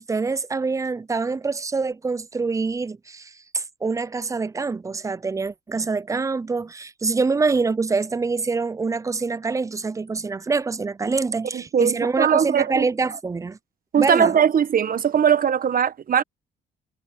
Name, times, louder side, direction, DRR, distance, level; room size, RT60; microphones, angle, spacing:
voice 1, 0.0-13.6 14.0-14.3, right 4 dB, 15° right, 0.4 m, -25 dB
voice 2, 11.5-12.9 13.9-16.2, right 8 dB, 45° right, 1.0 m, -20 dB
cardioid pair, 90°, 20 cm